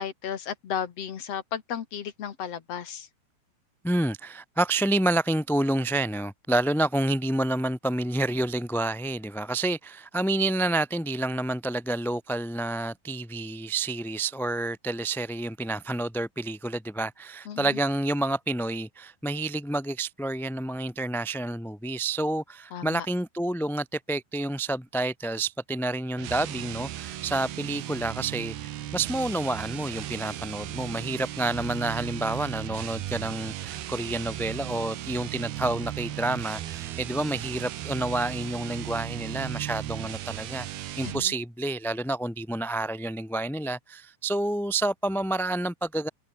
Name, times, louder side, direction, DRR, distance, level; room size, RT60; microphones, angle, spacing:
voice 1, 0.0-3.1 17.5-17.8 22.7-23.1 41.0-41.3, left 8 dB, 55° left, 1.9 m, -34 dB
voice 2, 3.8-46.1, right 2 dB, ahead, 2.5 m, -29 dB
sound 1, 26.1-41.3, right 13 dB, 70° right, 3.2 m, -36 dB
omnidirectional pair, 5.0 m